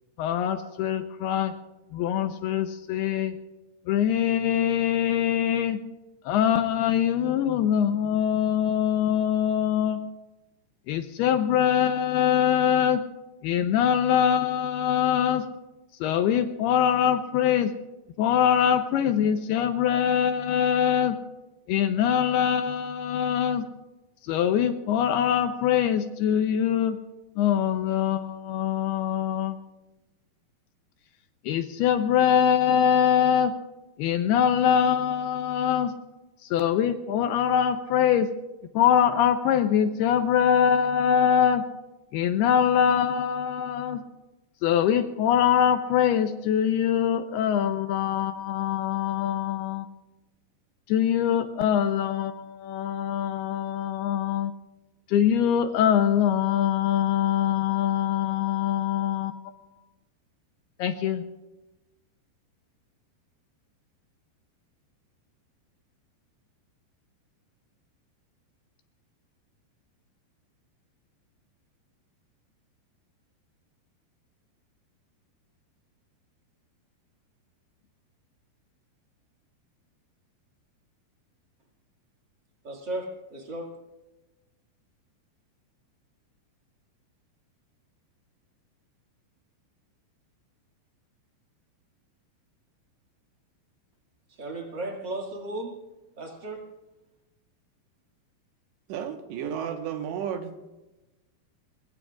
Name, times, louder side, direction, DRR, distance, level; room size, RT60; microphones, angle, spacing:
voice 1, 0.2-1.5 1.9-3.4 3.9-5.8 6.2-10.0 10.9-13.0 13.4-15.5 16.0-17.7 18.2-21.2 21.7-23.6 24.2-27.0 27.4-29.6 31.4-33.5 34.0-35.9 36.4-38.3 38.7-41.6 42.1-44.0 44.6-49.9 50.9-54.5 55.1-59.3 60.8-61.2, left 9 dB, 80° left, 8 dB, 2.5 m, -23 dB
voice 2, 82.6-83.7 94.3-95.8 96.2-96.7, right 2 dB, 35° right, 0 dB, 2.0 m, -35 dB
voice 3, 98.9-100.5, right 8 dB, 90° right, 5 dB, 3.5 m, -32 dB
23.5 x 22.0 x 2.5 m, 1.0 s
omnidirectional pair, 5.0 m